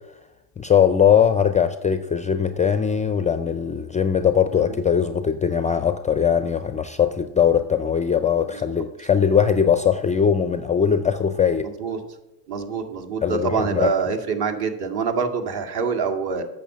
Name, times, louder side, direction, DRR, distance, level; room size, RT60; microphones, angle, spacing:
voice 1, 0.6-11.7 13.2-13.9, left 7 dB, 15° left, 10 dB, 0.3 m, -20 dB
voice 2, 11.6-12.0 12.5-16.4, right 5 dB, 50° right, 4 dB, 1.9 m, -26 dB
8.2 x 6.6 x 7.5 m, 0.98 s
supercardioid pair, 95°, 48 cm